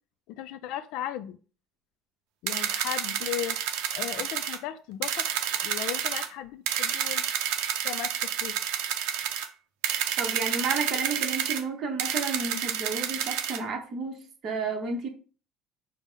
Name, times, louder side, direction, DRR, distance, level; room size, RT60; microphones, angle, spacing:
voice 1, 0.3-1.4 2.4-3.6 3.9-5.3 5.6-7.2 7.8-8.6, left 12 dB, 65° left, 12 dB, 0.3 m, -36 dB
sound 1, 2.5-4.6 5.0-6.3 6.7-9.5 9.8-11.6 12.0-13.6, right 9 dB, 80° right, 0.5 m, -29 dB
voice 2, 10.2-15.1, right 4 dB, 35° right, 3 dB, 0.8 m, -32 dB
5.0 x 2.0 x 3.8 m, 0.38 s
cardioid pair, 170°, 0 cm